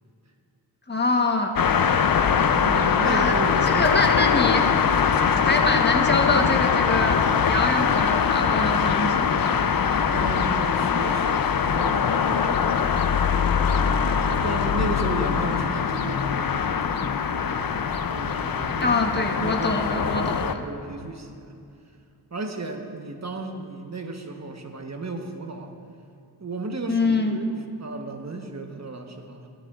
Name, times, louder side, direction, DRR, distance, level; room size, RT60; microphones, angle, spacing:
voice 1, 0.9-1.6 3.0-3.4 3.7-4.8 5.4-9.3 18.8-20.6 26.9-27.4, left 2 dB, 25° left, 3 dB, 1.1 m, -25 dB
sound 1, 1.6-20.5, left 7 dB, 60° left, 0.6 m, -22 dB
voice 2, 2.2-4.0 5.1-5.4 10.1-12.6 13.1-13.4 14.4-17.8 18.1-18.9 19.4-21.5 22.3-25.7 26.4-27.5 27.8-29.5, right 3 dB, 40° right, 4 dB, 1.1 m, -34 dB
16.0 x 12.5 x 2.4 m, 2.5 s
cardioid pair, 60°, 39 cm